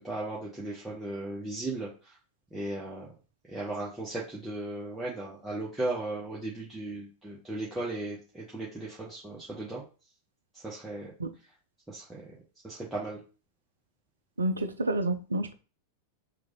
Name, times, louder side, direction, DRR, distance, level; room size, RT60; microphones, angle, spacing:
voice 1, 0.0-1.9 2.5-3.1 3.5-9.8 10.6-11.1 11.9-12.0 12.6-13.2, right 2 dB, 10° right, 1.0 m, -36 dB
voice 2, 14.4-15.5, right 2 dB, 75° right, 0.5 m, -29 dB
3.1 x 2.5 x 3.7 m
figure-of-eight pair, 90°, 0 cm